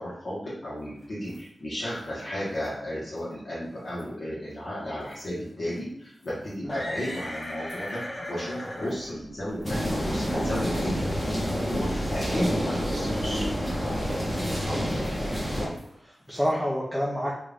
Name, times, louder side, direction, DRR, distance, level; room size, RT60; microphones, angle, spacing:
voice 1, 0.0-13.4, equal, 55° left, -9 dB, 1.3 m, -34 dB
sound 1, 1.0-1.4 1.8-2.0 2.6-2.7 3.2-3.3 3.8-4.1 5.1-5.2 5.8-5.9 6.2-10.4 10.7-10.8 11.6-11.7 13.7-14.2 14.4-16.5, left 1 dB, 40° left, 1.0 m, -40 dB
sound 2, 9.6-15.7, equal, 15° left, 1.2 m, -28 dB
voice 2, 16.0-17.3, equal, ahead, -4 dB, 0.6 m, -29 dB
3.3 x 2.6 x 3.4 m, 0.70 s
wide cardioid pair, 90°, 0 cm